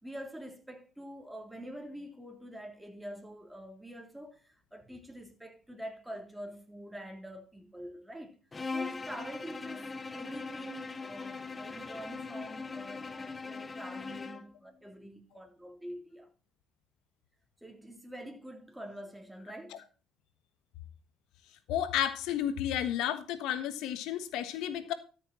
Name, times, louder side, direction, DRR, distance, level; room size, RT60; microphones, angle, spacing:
voice 1, 0.0-8.4 8.7-16.3 17.6-19.8, equal, 5° right, 3.4 m, -45 dB
Bowed string instrument, 8.5-14.5, left 4 dB, 30° left, 0.9 m, -40 dB
voice 2, 21.7-24.9, left 10 dB, 75° left, 1.4 m, -32 dB
13.0 x 6.8 x 4.2 m
hypercardioid pair, 65°, 0 cm